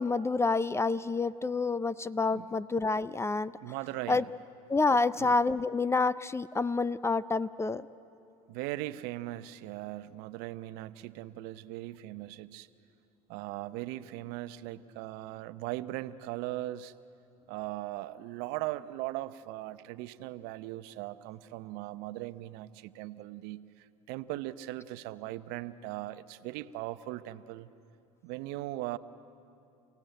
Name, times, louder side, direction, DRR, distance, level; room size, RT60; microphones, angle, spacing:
voice 1, 0.0-3.5 4.1-4.2 4.7-7.8, left 3 dB, 15° left, 18 dB, 0.5 m, -28 dB
voice 2, 3.6-4.3 5.2-5.3 8.5-12.7 13.3-16.9 17.5-27.7 28.2-29.0, right 16 dB, 60° right, 13 dB, 0.8 m, -39 dB
29.5 x 17.0 x 9.1 m, 2.7 s
hypercardioid pair, 80°, 19 cm